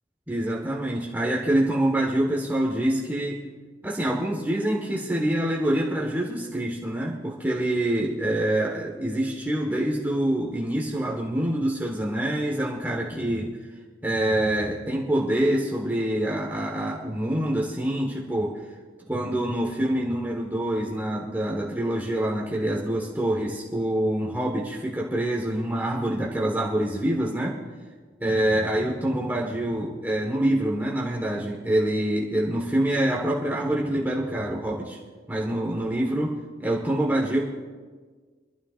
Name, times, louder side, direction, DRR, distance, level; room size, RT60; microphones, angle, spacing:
voice 1, 0.3-3.4 3.8-13.6 14.0-18.5 19.1-27.6 28.2-35.0 35.3-37.5, right 1 dB, 10° right, -3 dB, 1.4 m, -26 dB
26.5 x 12.5 x 2.5 m, 1.5 s
head